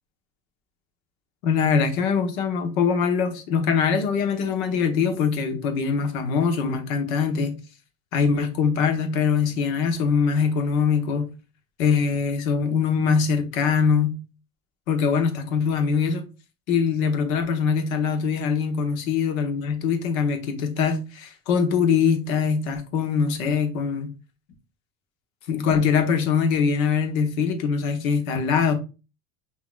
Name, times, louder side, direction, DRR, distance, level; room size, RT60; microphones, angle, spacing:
voice 1, 1.4-7.6 8.1-11.3 11.8-14.2 14.9-16.3 16.7-24.1 25.5-28.7, left 6 dB, 85° left, 1.0 m, -23 dB
5.8 x 2.8 x 2.3 m
supercardioid pair, 105°, 41 cm